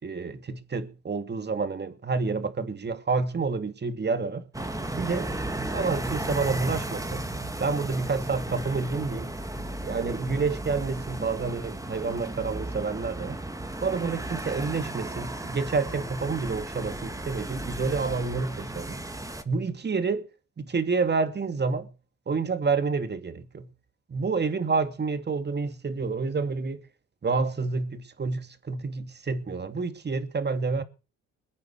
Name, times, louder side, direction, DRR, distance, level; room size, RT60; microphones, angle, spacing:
voice 1, 0.0-4.5 5.0-5.3 5.7-7.3 7.6-9.4 9.8-13.4 13.8-19.0 19.4-20.3 20.6-21.9 22.3-23.7 24.1-26.8 27.2-30.8, right 4 dB, 35° right, 2.7 m, -29 dB
sound 1, 4.5-19.4, right 2 dB, 10° right, 2.4 m, -34 dB
21.5 x 9.4 x 6.6 m
cardioid pair, 90°, 30 cm